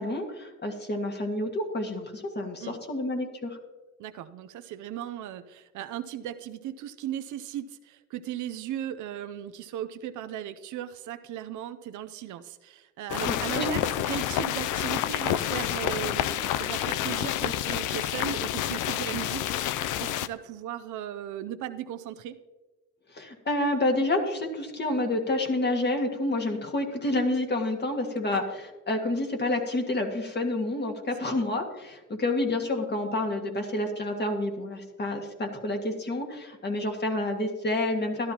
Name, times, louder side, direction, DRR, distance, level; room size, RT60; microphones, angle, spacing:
voice 1, 0.0-3.6 13.3-13.7 23.1-38.3, left 2 dB, 35° left, 3 dB, 1.7 m, -29 dB
voice 2, 4.0-13.8 14.1-22.4 28.3-28.4 31.2-31.3, right 11 dB, 80° right, 11 dB, 0.6 m, -37 dB
sound 1, 13.1-20.3, left 12 dB, 90° left, 0.5 m, -29 dB
12.5 x 12.0 x 2.9 m, 1.2 s
cardioid pair, 90°, 30 cm